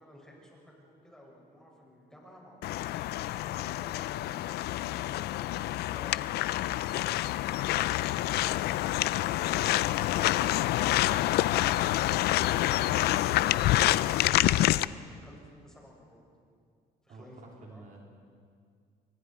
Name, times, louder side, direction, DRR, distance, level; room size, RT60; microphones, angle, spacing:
voice 1, 0.0-10.5 12.5-16.2 17.0-17.4 17.7-17.9, equal, 5° left, -3 dB, 7.6 m, -54 dB
sound 1, 2.6-14.8, left 15 dB, 75° left, 0.5 m, -27 dB
voice 2, 10.9-11.3 17.1-18.0, right 3 dB, 50° right, -1 dB, 3.5 m, -49 dB
29.0 x 23.0 x 4.8 m, 2.2 s
cardioid pair, 110°, 17 cm